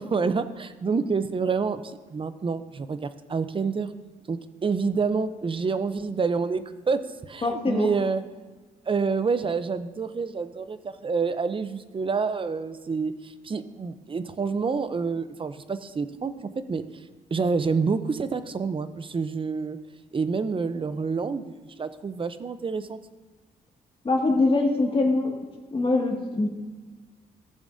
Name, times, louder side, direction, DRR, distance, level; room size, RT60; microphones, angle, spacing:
voice 1, 0.0-3.9 4.3-8.2 8.9-17.0 17.3-19.8 20.1-23.0, right 5 dB, 35° right, 12 dB, 0.6 m, -28 dB
voice 2, 7.4-7.9 24.0-25.3 25.7-26.5, left 2 dB, 35° left, 1 dB, 2.0 m, -23 dB
15.5 x 7.1 x 2.7 m, 1.3 s
cardioid pair, 75°, 16 cm